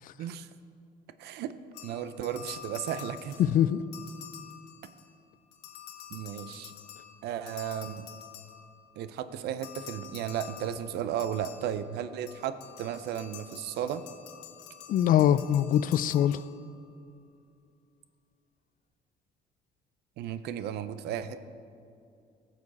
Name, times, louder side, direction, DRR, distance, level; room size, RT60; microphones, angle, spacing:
voice 1, 1.2-1.5 1.8-3.4 6.1-6.7 7.2-8.1 9.0-14.0 20.2-21.4, right 9 dB, 75° right, 12 dB, 0.6 m, -34 dB
sound 1, 1.7-5.2 5.5-9.0 9.6-16.9, left 10 dB, 90° left, 1.0 m, -48 dB
voice 2, 3.4-3.8 14.9-16.4, left 10 dB, 55° left, 16 dB, 0.4 m, -23 dB
15.5 x 6.9 x 4.2 m, 2.5 s
cardioid pair, 110°, 17 cm